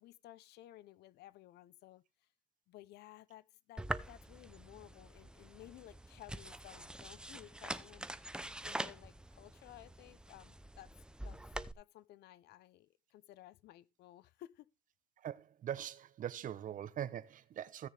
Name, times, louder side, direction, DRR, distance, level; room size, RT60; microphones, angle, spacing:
voice 1, 0.0-2.3 2.7-10.9 11.2-11.4 11.7-14.7, left 15 dB, 75° left, 0.8 m, -56 dB
sound 1, 3.8-11.7, right 1 dB, 5° right, 0.7 m, -45 dB
voice 2, 15.2-17.9, right 10 dB, 50° right, 0.8 m, -42 dB
16.0 x 6.8 x 3.4 m
cardioid pair, 110°, 17 cm